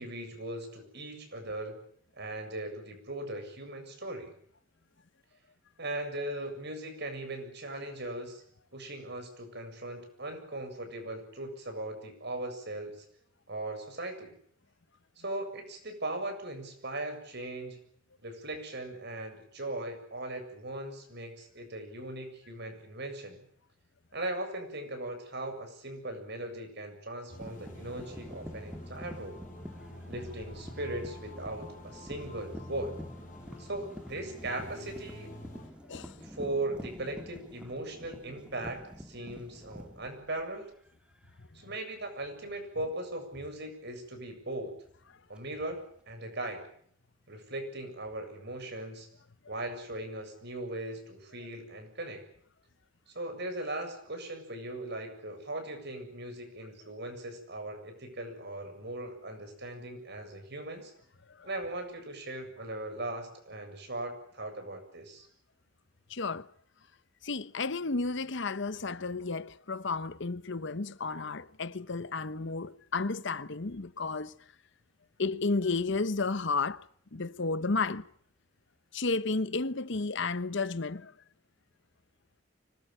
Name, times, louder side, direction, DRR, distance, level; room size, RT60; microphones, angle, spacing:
voice 1, 0.0-1.8 2.2-4.3 5.8-8.4 8.7-13.0 13.5-14.3 15.2-17.8 18.2-23.4 24.1-29.4 30.1-32.9 33.6-35.3 36.2-40.7 41.5-44.7 45.3-45.8 46.1-46.6 47.3-49.1 49.5-52.2 53.1-60.9 61.4-65.3, right 1 dB, 55° right, 7.5 m, -39 dB
sound 1, 27.3-35.7, left 1 dB, 40° left, 5.7 m, -48 dB
sound 2, 27.4-40.9 41.2-41.6 43.3-43.5 45.4-46.0, equal, 5° right, 2.1 m, -47 dB
voice 2, 66.1-66.5 67.2-74.3 75.2-76.8 77.1-78.1 78.9-81.1, left 3 dB, 60° left, 1.0 m, -32 dB
25.5 x 20.5 x 9.0 m
head